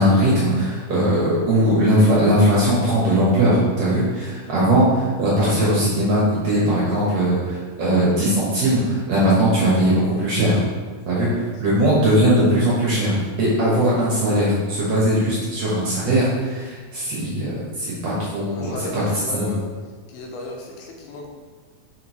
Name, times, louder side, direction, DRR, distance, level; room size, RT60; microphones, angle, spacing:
voice 1, 0.0-10.6 11.1-11.3 11.6-19.0, right 1 dB, 60° right, -7 dB, 1.8 m, -19 dB
voice 2, 11.0-11.8 18.5-19.6 20.1-21.3, left 2 dB, 90° left, 0 dB, 2.7 m, -36 dB
5.9 x 5.5 x 3.1 m, 1.5 s
omnidirectional pair, 4.3 m